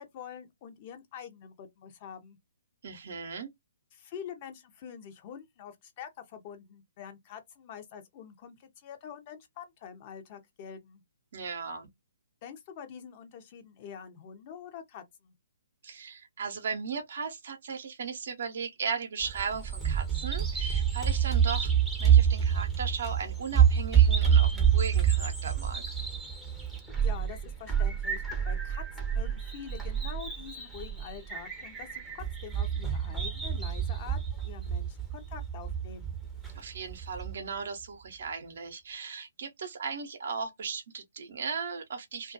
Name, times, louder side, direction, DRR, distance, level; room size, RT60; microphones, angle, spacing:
voice 1, 0.0-2.4 3.9-11.0 12.4-15.3 27.0-36.1, left 8 dB, 35° left, 0.6 m, -46 dB
voice 2, 2.8-3.5 11.3-11.9 15.8-21.7 22.0-25.8 36.5-42.3, right 5 dB, 55° right, 0.6 m, -37 dB
Bird vocalization bird call bird song, 19.2-37.3, right 8 dB, 5° right, 0.6 m, -27 dB
2.2 x 2.1 x 2.6 m
figure-of-eight pair, 130°, 0 cm